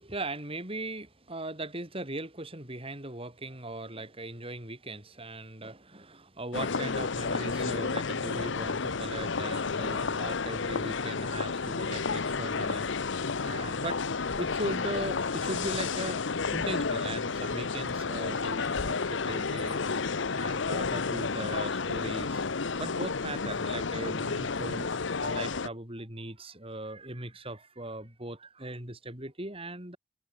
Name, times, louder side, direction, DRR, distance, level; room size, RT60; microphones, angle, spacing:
voice 1, 0.0-12.9 13.4-14.0 14.4-16.2 16.5-19.8 20.3-22.4 22.8-24.9 25.2-30.0, right 2 dB, 30° right, 4.6 m, -39 dB
sound 1, 6.5-25.7, left 4 dB, 65° left, 0.8 m, -31 dB
head